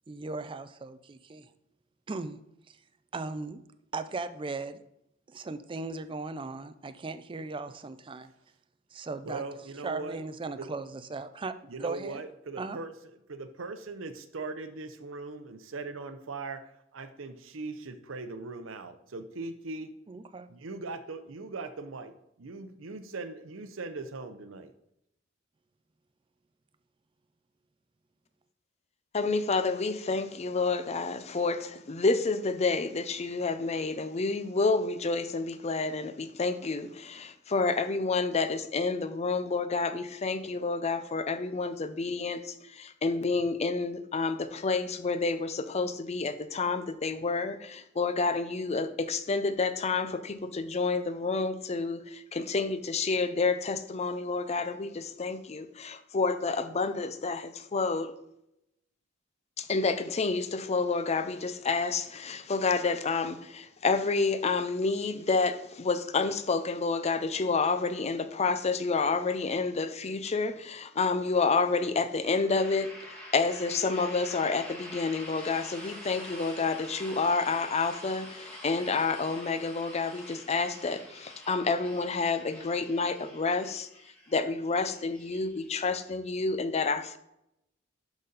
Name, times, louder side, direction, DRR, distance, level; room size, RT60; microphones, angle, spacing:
voice 1, 0.1-1.5 2.1-2.4 3.1-3.6 3.9-4.8 5.3-8.3 8.9-9.4 9.8-11.5 11.8-12.2 12.6-12.8 20.1-20.5, right 3 dB, 25° right, 0.4 m, -37 dB
voice 2, 9.3-10.2 10.6-10.7 11.7-12.9 13.3-16.6 16.9-19.9 20.5-24.7, right 3 dB, 80° right, 0.7 m, -40 dB
voice 3, 29.1-42.4 42.7-58.1 59.6-72.9 73.3-83.9 84.3-87.2, left 4 dB, 35° left, 0.5 m, -29 dB
sound 1, 72.2-86.0, equal, 5° left, 1.9 m, -47 dB
11.5 x 4.1 x 4.0 m
head